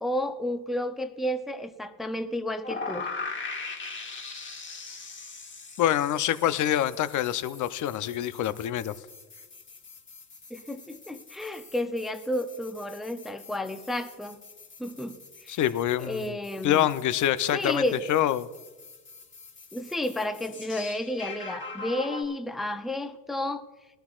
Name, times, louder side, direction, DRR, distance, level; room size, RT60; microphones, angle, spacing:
voice 1, 0.0-3.1 10.5-14.4 14.8-15.6 16.0-16.9 17.5-18.1 19.7-23.6, left 1 dB, ahead, 8 dB, 0.6 m, -31 dB
sound 1, 2.6-22.2, left 4 dB, 25° left, 1.6 m, -42 dB
voice 2, 5.8-8.9 15.5-16.4 16.6-18.5, left 11 dB, 40° left, 13 dB, 0.7 m, -26 dB
21.0 x 12.5 x 2.5 m, 1.2 s
supercardioid pair, 100°, 48 cm